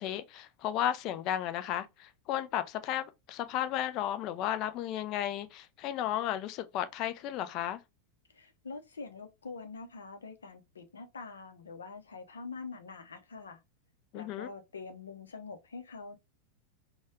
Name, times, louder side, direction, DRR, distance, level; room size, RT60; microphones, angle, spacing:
voice 1, 0.0-7.8 14.1-14.5, left 11 dB, 40° left, 0.4 m, -34 dB
voice 2, 8.3-13.6 14.1-16.2, left 4 dB, 70° left, 0.8 m, -45 dB
4.2 x 2.3 x 3.3 m
figure-of-eight pair, 90°, 0 cm